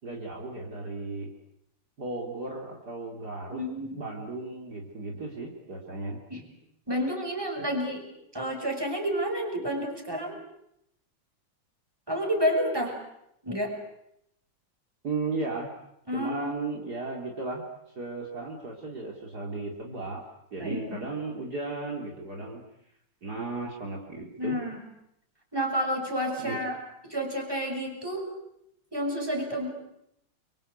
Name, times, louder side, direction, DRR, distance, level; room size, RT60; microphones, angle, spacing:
voice 1, 0.0-1.3 2.0-3.6 3.9-6.2 15.0-15.7 16.1-17.7 18.0-20.2 20.5-22.6 23.2-24.6 26.4-26.6, right 3 dB, 45° right, -1 dB, 3.9 m, -35 dB
voice 2, 3.5-4.0 6.3-6.4 6.9-8.0 8.3-10.4 12.1-13.0 13.4-13.7 16.1-16.5 20.6-21.0 24.4-24.8 25.5-26.8 27.0-28.3 28.9-29.7, equal, 10° right, 2 dB, 6.4 m, -30 dB
29.5 x 24.5 x 8.3 m, 0.80 s
omnidirectional pair, 2.3 m